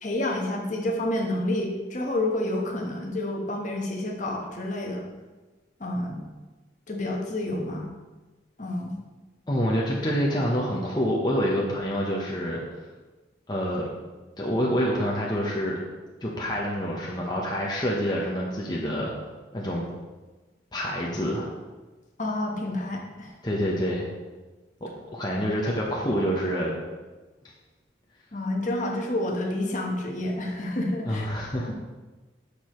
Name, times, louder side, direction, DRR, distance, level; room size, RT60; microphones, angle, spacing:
voice 1, 0.0-5.1 5.8-6.2 6.9-7.9 8.6-9.0 22.2-23.4 28.3-31.3, left 1 dB, 40° left, 0 dB, 1.2 m, -29 dB
voice 2, 9.5-12.6 13.5-13.9 14.4-15.8 16.2-19.1 19.5-19.8 20.7-21.5 23.4-24.1 24.8-26.8 31.1-31.7, equal, 25° left, -3 dB, 1.0 m, -27 dB
9.9 x 6.7 x 3.1 m, 1.2 s
head